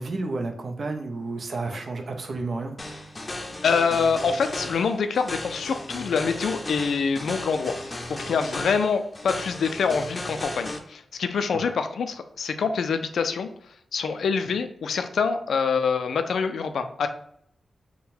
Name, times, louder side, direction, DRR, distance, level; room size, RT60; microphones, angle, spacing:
voice 1, 0.0-2.7 11.6-11.7, right 3 dB, 55° right, 4 dB, 0.6 m, -31 dB
sound 1, 2.8-10.8, left 1 dB, 25° left, 0.6 m, -36 dB
voice 2, 3.6-13.5 13.9-17.1, left 5 dB, 85° left, 8 dB, 0.4 m, -25 dB
3.8 x 2.2 x 4.2 m, 0.70 s
cardioid pair, 85°, 0 cm